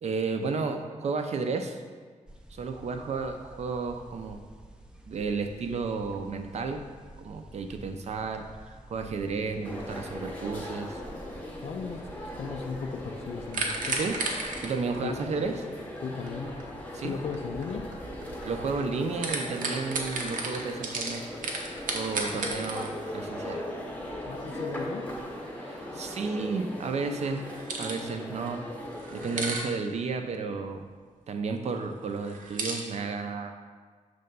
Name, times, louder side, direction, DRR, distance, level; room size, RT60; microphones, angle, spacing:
voice 1, 0.0-1.8 2.5-4.4 5.1-6.8 7.2-11.0 14.0-14.2 14.6-15.5 16.9-17.1 18.4-21.2 21.9-23.6 25.6-27.4 27.8-28.6 29.1-30.9 31.3-33.5, right 4 dB, 55° right, 5 dB, 0.5 m, -32 dB
sound 1, 2.3-14.7, right 1 dB, 5° right, 0.4 m, -50 dB
sound 2, 9.6-29.6, left 1 dB, 10° left, 0.8 m, -39 dB
voice 2, 11.6-12.1 12.4-14.1 15.0-15.3 16.0-16.6 17.0-17.9 22.4-22.6 24.2-25.1, left 5 dB, 55° left, 3 dB, 0.4 m, -36 dB
sound 3, 13.5-18.8 19.1-22.9 27.2-28.1 28.5-28.6 29.0-29.7 32.2-32.8, right 3 dB, 90° right, 0.8 m, -34 dB
6.6 x 3.4 x 5.3 m, 1.5 s
wide cardioid pair, 175°, 14 cm